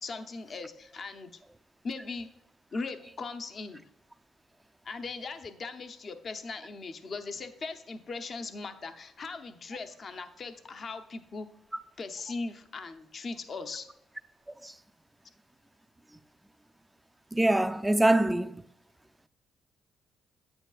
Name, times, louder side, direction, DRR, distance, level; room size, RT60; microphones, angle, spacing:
voice 1, 0.0-1.3 1.8-2.3 2.7-3.8 4.8-11.5 12.0-13.9, left 4 dB, 45° left, 0.7 m, -39 dB
voice 2, 17.3-18.6, right 1 dB, 10° right, 0.4 m, -24 dB
9.0 x 7.9 x 2.4 m
cardioid pair, 90°, 0 cm